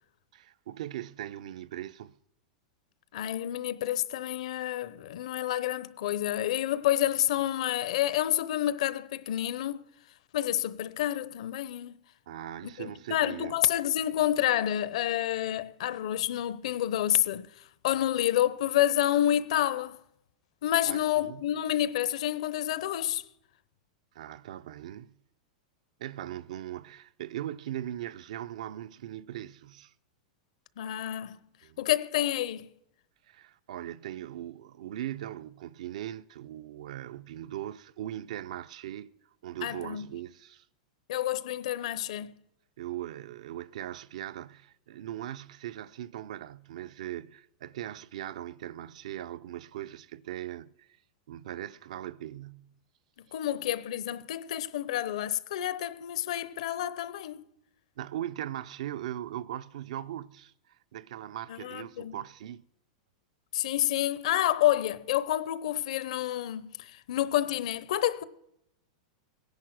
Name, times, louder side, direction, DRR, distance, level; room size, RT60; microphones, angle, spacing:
voice 1, 0.3-2.2 12.3-13.6 20.9-21.5 24.1-25.2 26.0-29.9 31.6-31.8 33.2-39.1 39.4-40.7 42.8-50.9 51.3-52.8 53.3-53.4 58.0-62.6, right 12 dB, 70° right, 0.6 m, -39 dB
voice 2, 3.1-9.8 10.3-11.9 12.8-17.5 17.8-20.0 20.6-23.2 30.8-31.4 31.8-32.7 39.6-40.0 41.1-42.3 53.3-57.5 61.5-62.2 63.5-68.2, left 12 dB, 65° left, 0.8 m, -29 dB
18.0 x 10.5 x 6.1 m
supercardioid pair, 165°, 4 cm